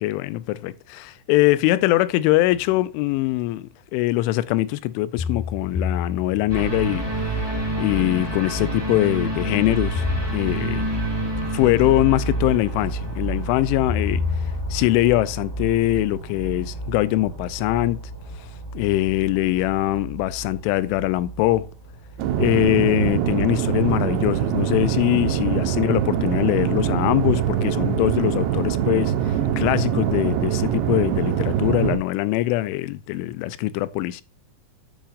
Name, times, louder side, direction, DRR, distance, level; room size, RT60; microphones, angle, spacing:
voice 1, 0.0-7.1 7.8-10.1 10.3-10.9 11.5-14.2 14.7-18.0 18.7-21.7 22.4-29.1 29.6-34.2, left 16 dB, 90° left, 3.0 m, -22 dB
sound 1, 2.6-2.7 5.2-6.8 9.9-11.0 13.9-15.2, left 6 dB, 65° left, 3.4 m, -29 dB
sound 2, 6.5-24.9 25.2-25.3, right 1 dB, 15° right, 1.0 m, -30 dB
sound 3, 22.2-32.0, right 9 dB, 75° right, 3.1 m, -23 dB
10.5 x 7.5 x 2.5 m
omnidirectional pair, 5.4 m